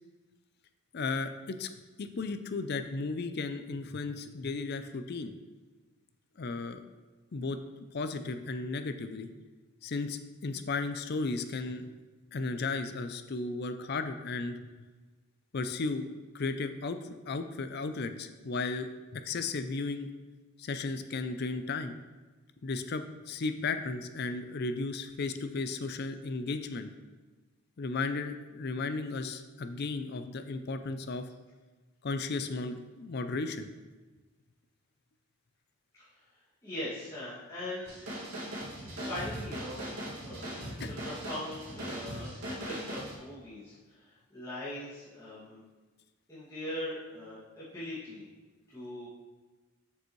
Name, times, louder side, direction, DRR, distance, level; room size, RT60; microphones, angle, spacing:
voice 1, 0.9-1.7 2.0-5.3 6.4-6.8 7.3-7.6 7.9-9.3 9.8-11.8 12.3-14.6 15.5-16.0 16.3-20.1 20.6-22.0 22.6-26.9 27.8-31.2 32.0-33.7 40.8-40.9, left 3 dB, 45° left, 9 dB, 0.4 m, -35 dB
voice 2, 36.6-37.9 38.2-38.4 39.0-39.9 40.2-40.5 40.8-43.7 44.3-45.6 46.3-48.3 48.7-49.1, left 1 dB, 15° left, -12 dB, 2.1 m, -40 dB
sound 1, 37.8-43.2, right 1 dB, 85° right, 2.1 m, -39 dB
6.9 x 6.7 x 3.1 m, 1.2 s
head